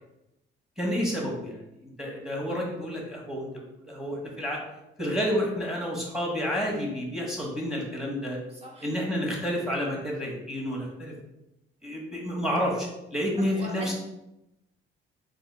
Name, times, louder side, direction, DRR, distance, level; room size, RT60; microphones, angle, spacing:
voice 1, 0.8-1.6 2.0-3.5 3.9-4.6 5.0-8.4 8.8-11.1 11.8-13.9, equal, ahead, -1 dB, 1.3 m, -30 dB
voice 2, 8.5-8.9 13.4-13.9, right 1 dB, 30° right, -3 dB, 1.4 m, -41 dB
3.5 x 2.6 x 4.4 m, 0.90 s
cardioid pair, 90°, 20 cm